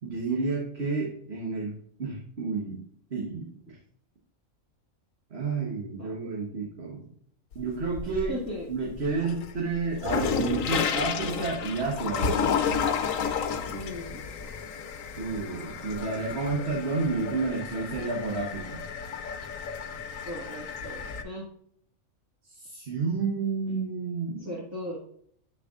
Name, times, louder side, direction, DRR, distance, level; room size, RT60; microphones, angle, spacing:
voice 1, 0.0-1.7 2.0-2.8 3.1-3.8 5.3-7.0 7.5-8.3 8.7-12.5 15.2-18.8 22.5-24.5, right 4 dB, 55° right, -2 dB, 1.5 m, -30 dB
sound 1, 7.5-8.5 8.9-21.2, left 6 dB, 80° left, 1.1 m, -32 dB
voice 2, 8.3-8.7 13.7-14.2 20.2-21.5 24.4-25.0, left 1 dB, 10° right, -6 dB, 1.6 m, -37 dB
8.6 x 6.6 x 2.4 m, 0.64 s
omnidirectional pair, 1.4 m